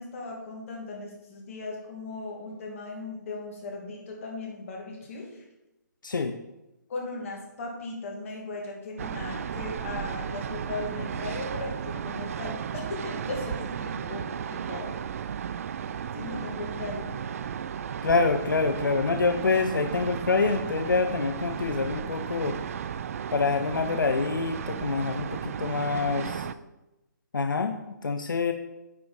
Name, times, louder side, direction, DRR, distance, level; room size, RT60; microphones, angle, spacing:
voice 1, 0.0-5.4 6.9-15.0 16.1-17.2 26.4-26.5, left 3 dB, 45° left, -1 dB, 2.2 m, -37 dB
voice 2, 6.0-6.4 18.0-22.6 23.3-26.5 27.3-28.5, left 4 dB, 90° left, 7 dB, 0.6 m, -26 dB
sound 1, 9.0-26.5, right 8 dB, 45° right, 0.4 m, -34 dB
9.4 x 5.0 x 4.2 m, 0.97 s
hypercardioid pair, 150°, 10 cm